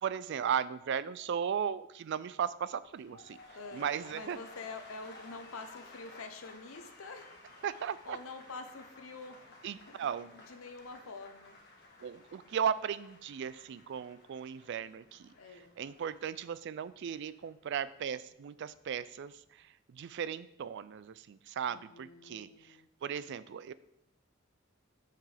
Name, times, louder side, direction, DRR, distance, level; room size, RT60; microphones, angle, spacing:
voice 1, 0.0-3.4 3.7-4.4 7.6-8.2 9.6-10.3 12.0-15.3 15.8-22.8 23.0-23.7, right 8 dB, 55° right, 16 dB, 0.3 m, -36 dB
sound 1, 2.8-18.9 19.2-19.6, left 2 dB, 50° left, 1.5 m, -56 dB
voice 2, 3.5-7.3 8.0-10.1 10.3-11.6 15.4-15.7 21.6-22.9, left 3 dB, 90° left, 8 dB, 0.8 m, -47 dB
7.3 x 5.8 x 3.4 m, 0.79 s
head